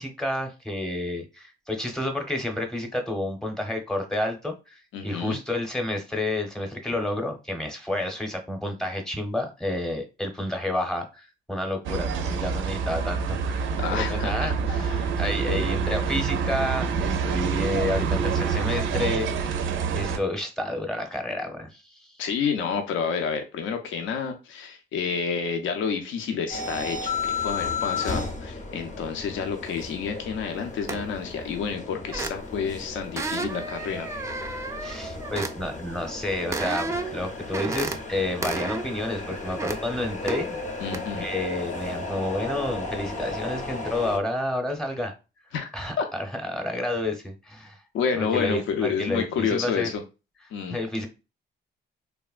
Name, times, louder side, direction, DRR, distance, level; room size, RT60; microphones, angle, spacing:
voice 1, 0.0-14.9 15.2-22.1 34.8-40.6 41.1-45.1 45.7-47.8 48.2-49.9 50.7-51.1, left 1 dB, 5° left, 0.7 m, -30 dB
voice 2, 4.9-5.4 13.8-15.1 15.4-15.8 22.2-34.1 40.8-41.3 45.5-45.7 46.0-46.1 47.9-50.0 50.5-50.8, left 6 dB, 80° left, 0.5 m, -29 dB
sound 1, 11.9-20.2, right 6 dB, 80° right, 0.4 m, -27 dB
sound 2, 26.5-44.2, left 4 dB, 40° left, 0.6 m, -34 dB
sound 3, 30.9-31.2 32.1-32.7 33.2-35.5 36.5-37.2 37.5-38.0 38.4-38.9 39.3-39.8 40.3-40.5 40.9-41.1, right 3 dB, 15° right, 0.3 m, -32 dB
3.3 x 2.1 x 2.3 m
cardioid pair, 90°, 20 cm